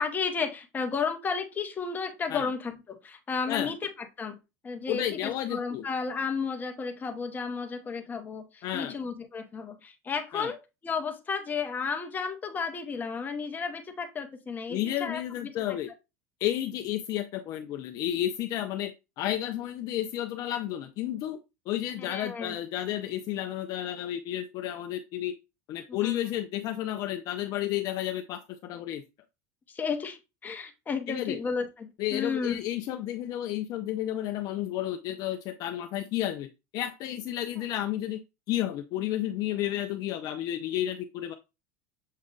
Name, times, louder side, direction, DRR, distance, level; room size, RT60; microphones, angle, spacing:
voice 1, 0.0-4.4 4.6-15.8 22.0-22.6 25.9-26.2 29.7-32.6, left 5 dB, 20° left, 5 dB, 0.8 m, -33 dB
voice 2, 4.9-5.9 8.6-9.0 10.3-10.5 14.7-15.9 16.4-21.4 21.7-25.3 25.7-29.0 31.1-31.4 32.0-36.5 36.7-38.2 38.5-41.3, left 12 dB, 50° left, 7 dB, 0.4 m, -32 dB
6.3 x 2.2 x 3.7 m, 0.26 s
supercardioid pair, 130°, 8 cm